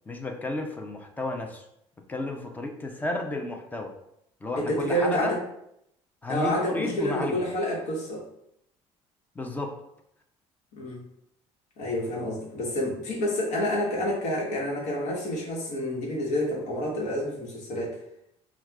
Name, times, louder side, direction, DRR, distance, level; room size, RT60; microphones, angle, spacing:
voice 1, 0.1-1.6 2.1-3.9 4.4-5.4 6.2-7.4 9.4-9.7, left 2 dB, 15° left, 3 dB, 0.5 m, -32 dB
voice 2, 4.6-5.4 6.3-8.2 10.7-11.0 11.8-18.0, equal, 75° left, -2 dB, 1.2 m, -28 dB
6.0 x 2.4 x 2.3 m, 0.78 s
cardioid pair, 135°, 12 cm